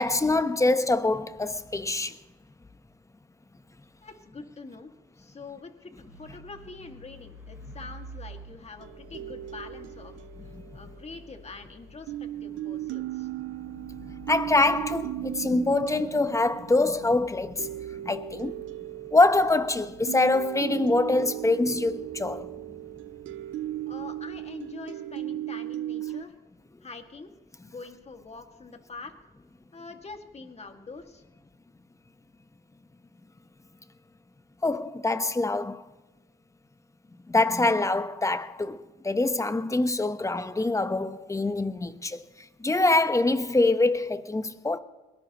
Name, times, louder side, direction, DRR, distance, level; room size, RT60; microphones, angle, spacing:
voice 1, 0.0-2.2 10.5-10.6 14.0-18.6 19.1-22.5 34.6-35.8 37.3-42.2 42.6-44.8, left 2 dB, 15° left, 0.9 m, -25 dB
voice 2, 4.0-10.2 10.7-13.3 23.9-26.3 26.8-27.3 27.6-29.1 29.7-31.2, left 3 dB, 30° left, 2.0 m, -44 dB
sound 1, 6.0-24.7, left 1 dB, 10° right, 5.0 m, -51 dB
sound 2, 8.8-11.6 12.1-26.2, right 14 dB, 75° right, 0.4 m, -37 dB
22.0 x 18.5 x 3.0 m
cardioid pair, 90°, 20 cm